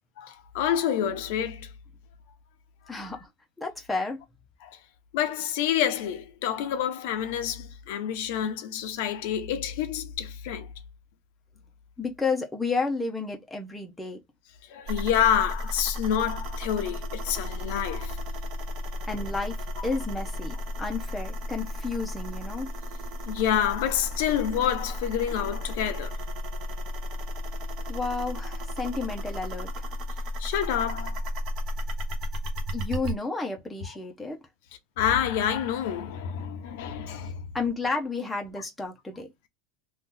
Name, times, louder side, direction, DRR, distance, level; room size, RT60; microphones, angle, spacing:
voice 1, 0.2-1.7 4.6-4.7 5.1-10.7 14.7-18.2 23.3-26.1 30.4-31.2 35.0-37.4, left 9 dB, 65° left, 0.7 m, -28 dB
voice 2, 2.9-3.3 3.6-4.2 12.0-14.2 19.1-19.6 19.8-22.7 27.9-29.9 32.7-34.4 37.5-39.3, left 4 dB, 5° left, 0.6 m, -31 dB
sound 1, 14.9-33.1, left 1 dB, 35° right, 0.7 m, -34 dB
2.8 x 2.3 x 3.6 m
supercardioid pair, 170°, 0 cm